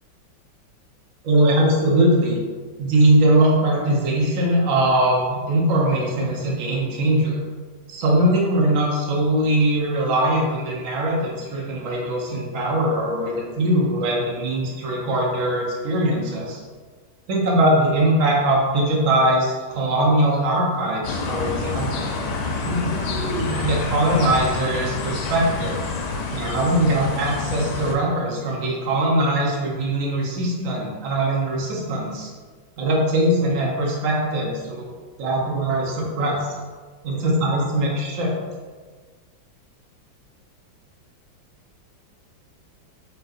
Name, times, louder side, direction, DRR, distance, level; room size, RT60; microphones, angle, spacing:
voice 1, 1.2-2.4 2.8-7.4 7.9-16.6 17.3-22.1 22.6-25.8 26.3-32.3 32.8-34.9 35.2-36.5 37.0-38.3, right 1 dB, 55° right, -3 dB, 1.0 m, -21 dB
sound 1, 21.0-28.0, left 3 dB, 75° left, 1.1 m, -28 dB
4.6 x 3.0 x 2.5 m, 1.5 s
omnidirectional pair, 2.0 m